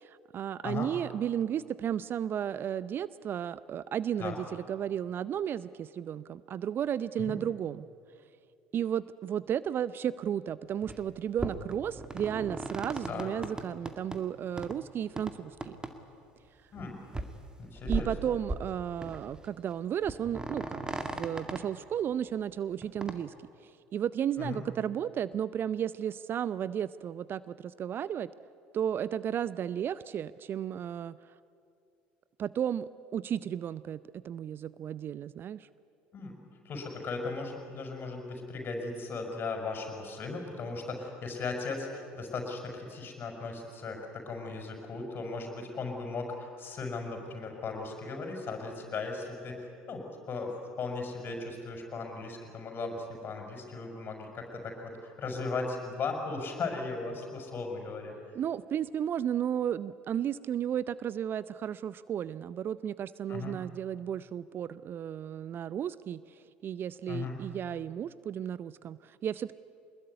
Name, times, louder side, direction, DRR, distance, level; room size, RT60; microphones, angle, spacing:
voice 1, 0.0-7.9 8.7-15.7 17.9-23.3 23.6-28.3 28.7-31.2 32.4-35.7 58.3-66.2 66.6-69.6, right 9 dB, 40° right, 17 dB, 0.6 m, -33 dB
sound 1, 10.8-11.0 11.4-14.2 14.6-14.8 15.2-15.3 15.6-15.9 16.2-16.3 16.8-16.9 17.1-17.4 17.8-18.7 19.0-19.4 19.7-19.8 20.0-21.6 22.8-23.1, right 2 dB, 15° right, 2.1 m, -37 dB
voice 2, 17.6-18.1 24.4-24.6 36.1-36.3 36.6-58.1 63.3-63.6 67.1-67.4, left 4 dB, 40° left, 3 dB, 6.1 m, -37 dB
23.5 x 21.0 x 9.6 m, 2.4 s
figure-of-eight pair, 65°, 6 cm